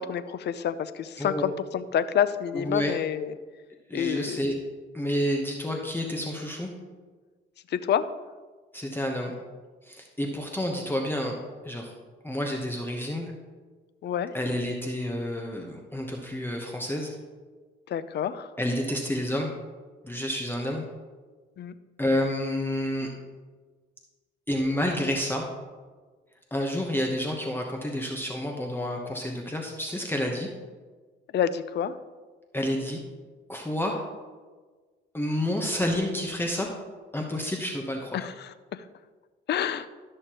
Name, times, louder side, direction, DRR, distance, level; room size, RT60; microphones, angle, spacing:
voice 1, 0.0-3.3 3.9-4.4 7.7-8.1 14.0-14.3 17.9-18.5 21.6-21.7 31.3-32.0 38.1-38.8 39.5-39.9, left 9 dB, 60° left, 13 dB, 0.5 m, -28 dB
voice 2, 2.5-2.9 3.9-4.5 4.9-6.7 8.7-9.3 9.8-11.4 11.6-11.9 12.2-13.3 14.3-17.1 18.6-19.5 20.0-20.9 22.0-23.1 24.5-25.5 26.5-30.5 32.5-33.0 33.5-34.0 35.1-36.8 37.1-38.3, left 1 dB, 10° left, 1 dB, 1.0 m, -29 dB
12.5 x 6.5 x 3.0 m, 1.4 s
cardioid pair, 90°, 20 cm